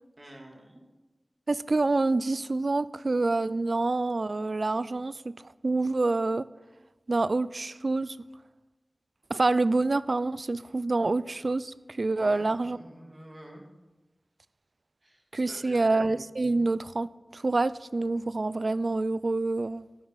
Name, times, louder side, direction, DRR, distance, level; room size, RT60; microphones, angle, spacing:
voice 1, 0.2-0.8 12.1-13.6 15.0-16.2, right 1 dB, 35° right, 0 dB, 2.8 m, -48 dB
voice 2, 1.5-6.5 7.1-8.2 9.3-12.8 15.3-19.9, right 3 dB, 65° right, 17 dB, 0.4 m, -27 dB
12.5 x 10.5 x 4.1 m, 1.1 s
wide cardioid pair, 65°, 0 cm